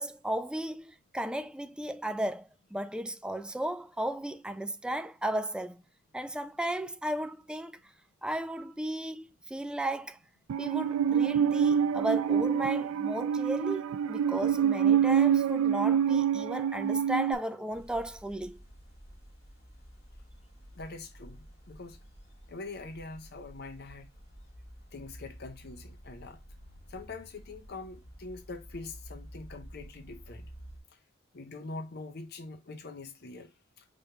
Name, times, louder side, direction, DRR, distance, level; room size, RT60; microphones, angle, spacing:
voice 1, 0.0-5.8 6.1-7.9 8.2-10.2 10.6-18.6, right 1 dB, 5° right, 0.3 m, -35 dB
Musical instrument, 10.5-17.3, right 8 dB, 85° right, 0.3 m, -26 dB
sound 1, 17.7-30.8, equal, 30° left, 3.4 m, -51 dB
voice 2, 20.7-22.0 22.5-24.1 24.9-26.4 26.9-30.5 31.3-33.9, left 3 dB, 50° left, 0.7 m, -44 dB
5.2 x 3.0 x 3.2 m
head